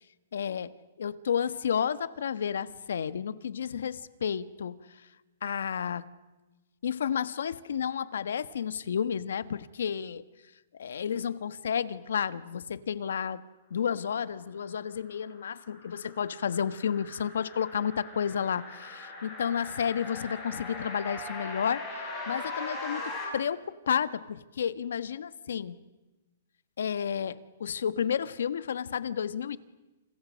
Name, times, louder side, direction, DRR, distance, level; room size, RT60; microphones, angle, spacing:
voice 1, 0.3-0.7 1.0-4.8 5.4-6.1 6.8-10.2 10.7-13.4 13.7-25.8 26.8-29.6, left 8 dB, 75° left, 15 dB, 1.4 m, -31 dB
sound 1, 14.9-23.2, left 2 dB, 10° left, 6.7 m, -40 dB
30.0 x 29.0 x 6.4 m, 1.1 s
hypercardioid pair, 180°, 0 cm